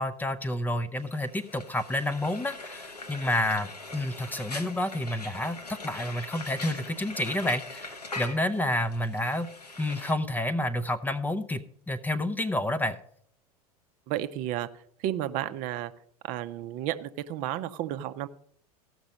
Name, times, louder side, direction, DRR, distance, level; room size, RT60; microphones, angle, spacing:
voice 1, 0.0-9.5 9.8-13.0, left 1 dB, 10° left, 11 dB, 0.7 m, -29 dB
Frying (food), 1.0-10.1, left 3 dB, 85° left, 1.2 m, -42 dB
voice 2, 14.1-14.7 15.0-15.9 16.2-18.3, right 12 dB, 40° right, 11 dB, 0.7 m, -32 dB
15.5 x 6.2 x 5.2 m, 0.64 s
figure-of-eight pair, 85°, 20 cm